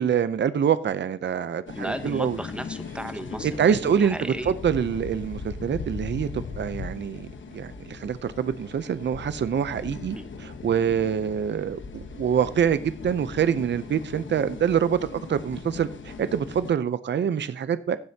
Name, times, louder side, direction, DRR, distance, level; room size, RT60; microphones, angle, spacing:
voice 1, 0.0-2.4 3.4-18.0, right 8 dB, 60° right, 13 dB, 0.5 m, -25 dB
sound 1, 1.7-16.7, left 4 dB, 70° left, 1.1 m, -39 dB
voice 2, 1.7-4.5 10.1-10.3, right 1 dB, 5° right, 9 dB, 0.8 m, -35 dB
Thunder, 2.1-7.2 8.0-8.1 8.3-8.4 9.5-9.8, left 5 dB, 90° left, 1.3 m, -49 dB
15.5 x 7.7 x 2.8 m, 0.42 s
wide cardioid pair, 130°, 21 cm